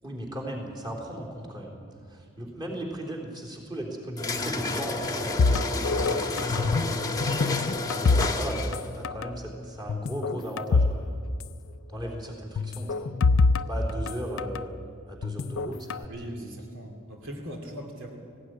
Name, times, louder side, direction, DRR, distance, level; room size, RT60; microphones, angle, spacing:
voice 1, 0.0-7.7 8.0-11.2 11.9-13.1 13.7-14.7 15.1-16.5, right 1 dB, 20° right, -1 dB, 3.7 m, -37 dB
sound 1, 4.2-8.9, left 2 dB, 15° left, 1.3 m, -30 dB
sound 2, 5.4-6.9 7.2-8.8 9.0-9.3 9.9-11.0 11.3-11.4 12.6-14.6 15.2-16.0, left 4 dB, 65° left, 0.5 m, -25 dB
voice 2, 16.1-18.2, equal, 65° right, 2 dB, 2.7 m, -40 dB
19.0 x 16.0 x 9.6 m, 2.3 s
head